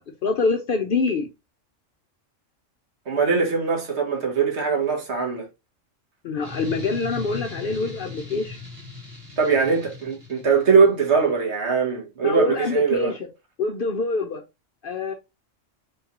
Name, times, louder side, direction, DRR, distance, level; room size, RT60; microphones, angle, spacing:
voice 1, 0.2-1.3 6.2-8.6 12.2-13.3 13.6-14.4 14.8-15.1, left 4 dB, 55° left, 0.6 m, -25 dB
voice 2, 3.1-5.5 9.4-13.1, right 5 dB, 60° right, 1.5 m, -21 dB
sound 1, 6.4-10.9, left 4 dB, 30° right, 1.8 m, -38 dB
3.9 x 3.5 x 2.9 m
omnidirectional pair, 1.3 m